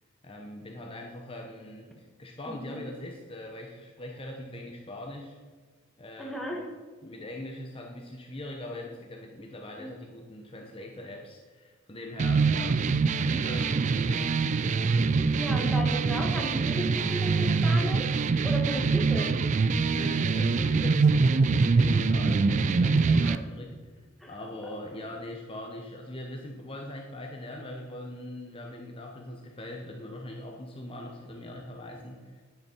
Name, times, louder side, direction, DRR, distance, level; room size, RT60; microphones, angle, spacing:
voice 1, 0.2-5.4 6.0-6.6 7.0-12.8 13.2-14.4 19.8-23.8 24.3-32.4, left 1 dB, 25° left, 1 dB, 0.9 m, -41 dB
voice 2, 2.5-2.8 6.2-6.7 9.8-9.9 15.4-18.1 18.4-19.3 23.2-23.4 24.2-24.3, equal, ahead, -1 dB, 1.4 m, -35 dB
sound 1, 12.2-23.4, right 4 dB, 35° right, 0.3 m, -24 dB
10.5 x 8.0 x 4.5 m, 1.5 s
head